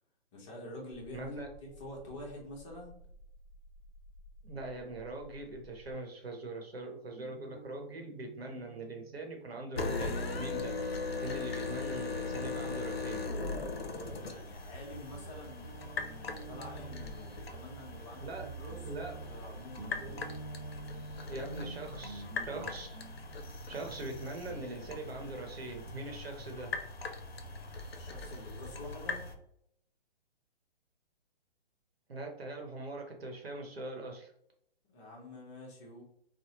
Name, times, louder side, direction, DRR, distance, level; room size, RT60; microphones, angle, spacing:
voice 1, 0.3-2.9 13.8-18.8 19.1-20.0 27.9-29.2 34.9-36.0, left 1 dB, 30° left, -1 dB, 0.9 m, -47 dB
sound 1, 0.9-5.9, left 1 dB, ahead, 0.6 m, -55 dB
voice 2, 1.1-1.5 4.4-10.7 11.2-13.2 18.2-18.4 18.8-19.1 21.3-23.0 23.7-26.7 32.1-34.3, right 2 dB, 85° right, 2 dB, 1.0 m, -42 dB
Guitar, 7.1-14.8 15.1-25.6, right 2 dB, 45° right, 0.8 m, -51 dB
sound 2, 9.7-29.3, left 3 dB, 80° left, 0.6 m, -40 dB
3.4 x 2.1 x 2.9 m, 0.72 s
figure-of-eight pair, 135°, 30 cm